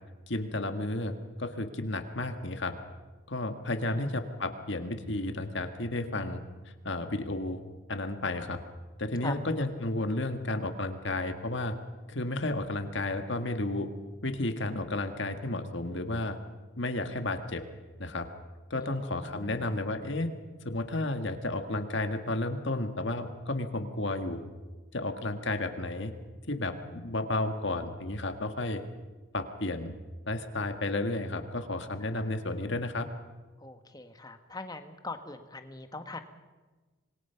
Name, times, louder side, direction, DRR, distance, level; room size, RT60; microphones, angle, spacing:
voice 1, 0.3-2.8 3.3-6.4 6.9-7.6 7.9-8.6 9.0-11.8 12.1-13.9 14.2-16.4 16.8-17.7 18.0-18.3 18.7-20.3 20.7-24.4 24.9-26.1 26.5-28.8 29.3-29.9 30.3-33.1, left 2 dB, 60° left, 7 dB, 1.8 m, -32 dB
voice 2, 18.7-19.7 32.1-32.2 33.6-36.2, left 2 dB, 20° left, 7 dB, 1.5 m, -42 dB
27.0 x 21.5 x 5.8 m, 1.3 s
head